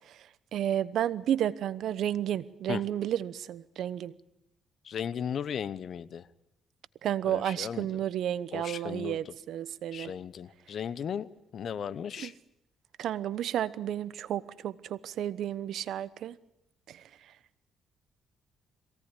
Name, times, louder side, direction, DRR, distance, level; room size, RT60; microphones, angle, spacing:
voice 1, 0.5-4.1 7.0-10.1 12.2-12.3 13.0-16.4 16.9-17.0, right 10 dB, 75° right, 17 dB, 1.0 m, -32 dB
voice 2, 4.8-6.3 7.2-8.0 8.5-9.3 9.9-12.3, left 8 dB, 60° left, 17 dB, 1.0 m, -36 dB
23.0 x 17.5 x 9.9 m, 0.81 s
cardioid pair, 90°, 0 cm